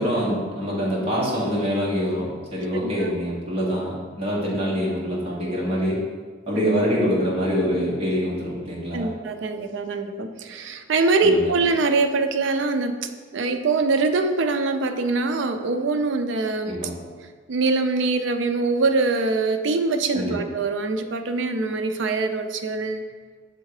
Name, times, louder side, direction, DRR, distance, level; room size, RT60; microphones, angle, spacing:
voice 1, 0.0-6.0 6.5-9.1 11.2-11.5 16.7-16.9 20.1-20.4, equal, 30° right, -5 dB, 1.5 m, -25 dB
voice 2, 2.8-3.1 6.5-6.7 8.9-16.8 17.5-23.0, right 3 dB, 70° right, 7 dB, 0.4 m, -23 dB
6.7 x 3.6 x 4.8 m, 1.5 s
head